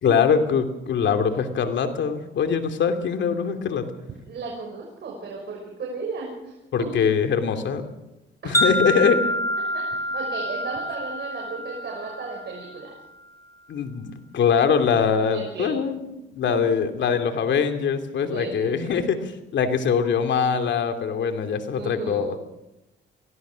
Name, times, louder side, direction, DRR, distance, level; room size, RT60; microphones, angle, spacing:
voice 1, 0.0-3.9 6.7-7.8 8.4-9.2 13.7-22.4, left 6 dB, 65° left, 6 dB, 2.7 m, -23 dB
voice 2, 4.2-6.9 8.4-8.6 9.7-12.9 15.3-15.8 16.6-16.7 18.3-19.0 21.7-22.3, right 4 dB, 60° right, -1 dB, 6.3 m, -35 dB
Wind chime, 8.5-12.8, equal, 15° left, 2.4 m, -27 dB
24.0 x 17.5 x 6.3 m, 0.93 s
cardioid pair, 90°, 20 cm